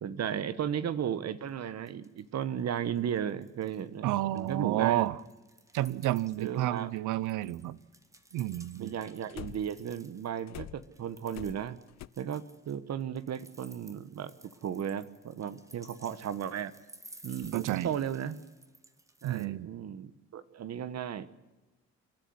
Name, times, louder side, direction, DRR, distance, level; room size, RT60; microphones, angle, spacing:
voice 1, 0.0-5.2 6.4-6.9 8.7-11.8 12.2-14.3 14.6-16.7 17.2-18.4 19.2-21.3, right 9 dB, 60° right, 14 dB, 1.2 m, -35 dB
sound 1, 1.5-1.6 1.9-2.4 2.7-3.9 4.2-10.4 10.8-19.5, right 1 dB, 10° right, 1.8 m, -56 dB
voice 2, 4.0-5.2 5.7-7.8 8.3-8.9 17.5-17.9 19.2-19.7, right 15 dB, 90° right, 20 dB, 0.8 m, -30 dB
sound 2, 6.3-6.4 9.3-9.9 10.5-12.1, left 13 dB, 60° left, 0.7 m, -45 dB
29.0 x 10.5 x 9.7 m, 1.2 s
cardioid pair, 90°, 30 cm